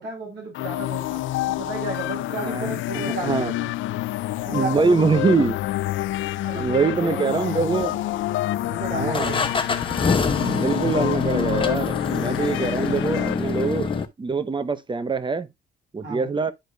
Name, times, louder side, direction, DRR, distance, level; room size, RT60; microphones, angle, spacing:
voice 1, 0.0-3.7 4.4-5.3 6.4-7.9 8.6-9.6 16.0-16.3, right 2 dB, 60° right, 4.6 m, -33 dB
sound 1, 0.5-14.1, left 15 dB, 75° left, 0.4 m, -28 dB
voice 2, 2.9-3.5 4.5-5.6 6.5-8.0 8.9-9.4 10.4-15.5 15.9-16.5, right 4 dB, 25° right, 0.9 m, -24 dB
sound 2, 7.8-8.5 9.1-14.1, left 4 dB, 25° left, 1.0 m, -26 dB
11.5 x 5.1 x 2.3 m
cardioid pair, 90°, 20 cm